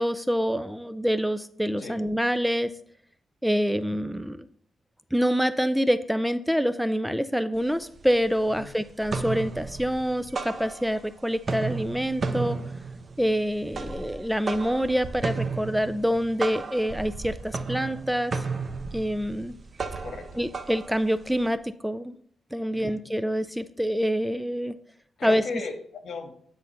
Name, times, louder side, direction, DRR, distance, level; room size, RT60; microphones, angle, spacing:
voice 1, 0.0-2.7 3.4-4.5 5.1-12.6 13.2-18.3 18.9-19.5 20.4-22.2 22.5-24.7 25.2-25.4, equal, ahead, 12 dB, 0.4 m, -26 dB
sound 1, 7.6-7.7 8.0-8.6 8.9-11.1 11.4-21.5, right 4 dB, 40° right, 0.9 m, -34 dB
voice 2, 20.0-20.4 22.7-23.0 25.2-26.3, left 4 dB, 70° left, 4 dB, 1.6 m, -36 dB
9.8 x 3.9 x 5.7 m, 0.63 s
cardioid pair, 100°, 0 cm